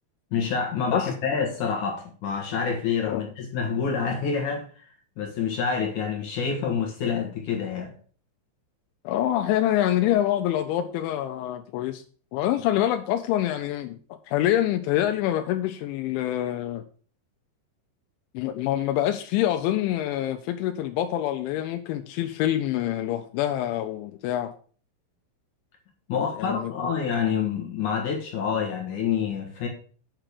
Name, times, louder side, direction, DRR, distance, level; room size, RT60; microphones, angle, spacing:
voice 1, 0.3-4.7 5.2-7.9 26.1-29.7, left 6 dB, 65° left, 1.9 m, -27 dB
voice 2, 9.0-12.0 12.3-16.8 18.3-24.5 26.4-26.9, left 12 dB, 85° left, 2.9 m, -26 dB
9.0 x 6.0 x 6.6 m
omnidirectional pair, 5.5 m